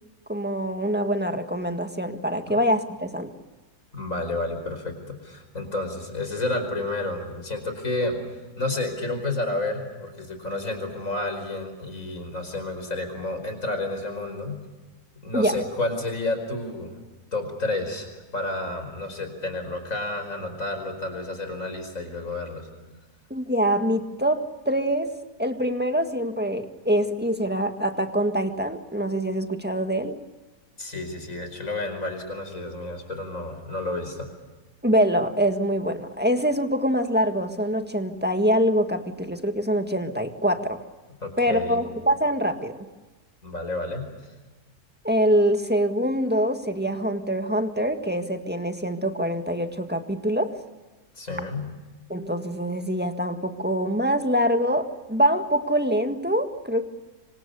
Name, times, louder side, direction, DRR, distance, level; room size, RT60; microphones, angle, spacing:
voice 1, 0.3-3.3 15.3-15.6 23.3-25.1 25.4-30.2 34.8-40.8 41.4-42.8 45.0-50.5 52.1-56.9, equal, 5° right, 6 dB, 1.7 m, -24 dB
voice 2, 3.9-8.2 8.6-14.6 15.2-17.0 17.3-22.7 30.8-34.3 41.2-41.8 43.4-44.1 51.2-51.7, left 2 dB, 60° left, 6 dB, 5.3 m, -30 dB
26.0 x 25.5 x 6.9 m, 1.2 s
omnidirectional pair, 1.6 m